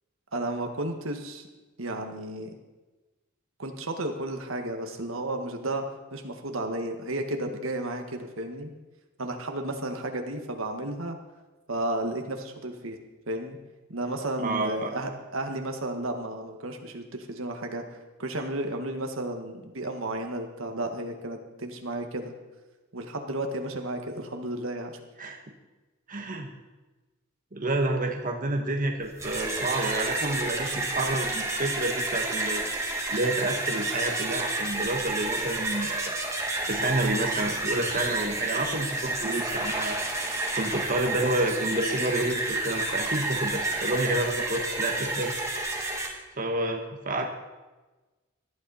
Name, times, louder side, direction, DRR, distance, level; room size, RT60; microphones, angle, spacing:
voice 1, 0.3-1.5 1.8-2.5 3.6-5.8 6.1-8.7 9.2-11.2 11.7-13.0 13.3-13.6 13.9-22.3 22.9-25.0, right 1 dB, 70° right, 4 dB, 1.8 m, -33 dB
voice 2, 14.4-14.9 25.2-25.4 26.1-26.5 27.5-32.7 33.1-36.1 36.7-40.0 40.5-45.3 46.4-47.3, right 2 dB, 40° right, 2 dB, 1.4 m, -29 dB
sound 1, 29.0-46.1, right 2 dB, 15° right, 2.2 m, -30 dB
19.0 x 12.5 x 4.3 m, 1.2 s
head